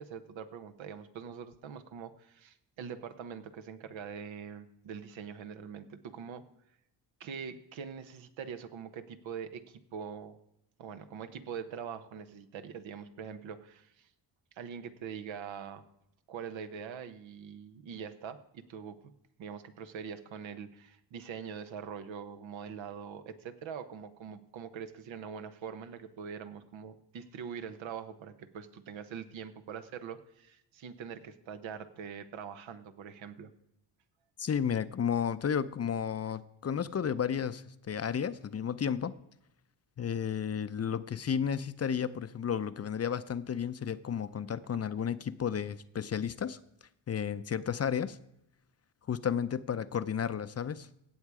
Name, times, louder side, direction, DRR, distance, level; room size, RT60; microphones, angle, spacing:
voice 1, 0.0-6.4 7.2-10.4 10.8-14.1 14.5-15.8 16.3-19.0 19.4-33.5, right 7 dB, 80° right, 9 dB, 1.1 m, -43 dB
voice 2, 34.4-39.1 40.0-46.6 47.1-48.2 49.1-50.9, left 8 dB, 35° left, 13 dB, 0.6 m, -32 dB
16.5 x 7.2 x 4.8 m, 0.81 s
cardioid pair, 90°, 45 cm